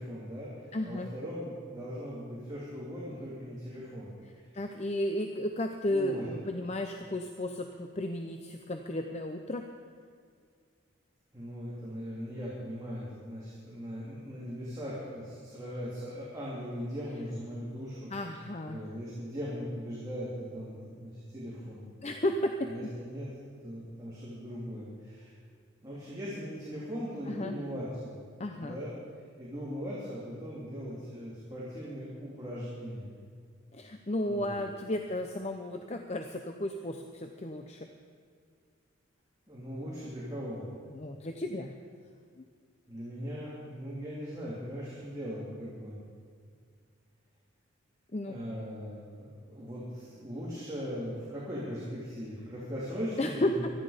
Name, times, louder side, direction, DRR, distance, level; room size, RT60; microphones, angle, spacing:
voice 1, 0.0-4.1 5.9-6.3 11.3-18.1 18.7-21.9 22.6-23.3 23.6-25.3 25.8-28.2 28.6-28.9 29.4-33.1 34.3-34.6 39.5-40.6 42.9-46.0 48.3-53.6, equal, 15° right, -8 dB, 3.1 m, -39 dB
voice 2, 0.7-1.1 4.5-9.6 18.1-18.8 22.0-22.7 27.3-27.6 28.4-28.8 33.7-37.9 40.9-41.8 42.4-42.5 48.1-48.4 53.2-53.7, left 1 dB, 30° left, 5 dB, 0.7 m, -33 dB
24.5 x 10.0 x 5.1 m, 2.1 s
head